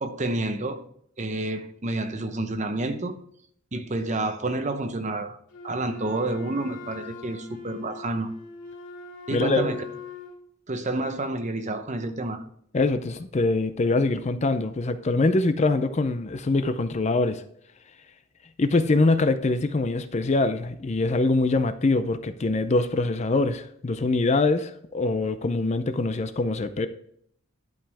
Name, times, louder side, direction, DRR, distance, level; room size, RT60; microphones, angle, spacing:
voice 1, 0.0-0.8 1.2-3.1 3.7-5.4 5.6-8.3 9.3-9.8 10.7-12.4, right 2 dB, 35° right, 0.8 m, -29 dB
Wind instrument woodwind instrument, 5.5-10.4, left 4 dB, 65° left, 2.8 m, -41 dB
voice 2, 9.3-9.7 12.7-17.4 18.6-26.9, left 3 dB, 35° left, 0.5 m, -24 dB
11.5 x 5.4 x 3.4 m
head